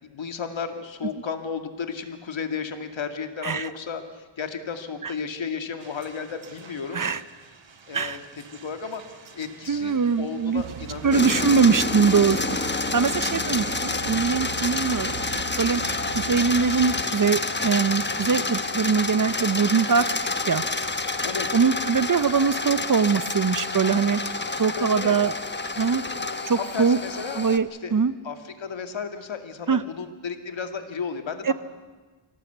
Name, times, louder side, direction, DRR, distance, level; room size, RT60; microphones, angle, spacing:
voice 1, 0.0-7.0 7.9-8.2 8.6-11.5 21.2-21.5 24.7-25.1 26.5-27.4 27.8-27.9 28.2-31.5, left 6 dB, 70° left, 7 dB, 2.3 m, -33 dB
sound 1, 5.8-13.0, right 5 dB, 65° right, 2.5 m, -50 dB
voice 2, 9.7-10.6 11.0-12.6 12.9-15.2 15.6-15.8 16.1-20.0 20.5-20.6 21.5-24.2 24.6-25.3 25.8-26.0 26.5-27.0 27.4-28.1 29.7-29.8 31.4-31.5, right 6 dB, 40° right, 15 dB, 0.8 m, -22 dB
sound 2, 10.6-17.0, right 13 dB, 90° right, 0.6 m, -39 dB
sound 3, 11.1-27.6, left 3 dB, 20° left, 1.2 m, -28 dB
25.0 x 17.5 x 8.1 m, 1.3 s
wide cardioid pair, 85°, 48 cm